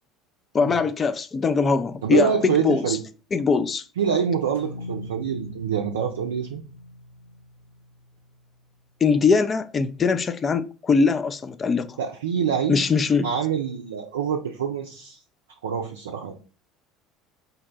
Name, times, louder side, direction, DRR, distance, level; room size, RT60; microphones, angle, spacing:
voice 1, 0.5-3.0 3.3-3.8 9.0-12.0 12.7-13.3, left 5 dB, 30° left, 0.3 m, -22 dB
voice 2, 2.0-3.0 4.0-6.6 12.0-12.8 13.2-15.2 15.6-16.3, right 7 dB, 75° right, 0.4 m, -25 dB
sound 1, 4.5-8.8, left 2 dB, 85° left, 0.6 m, -41 dB
3.9 x 2.1 x 3.9 m
figure-of-eight pair, 65°, 0 cm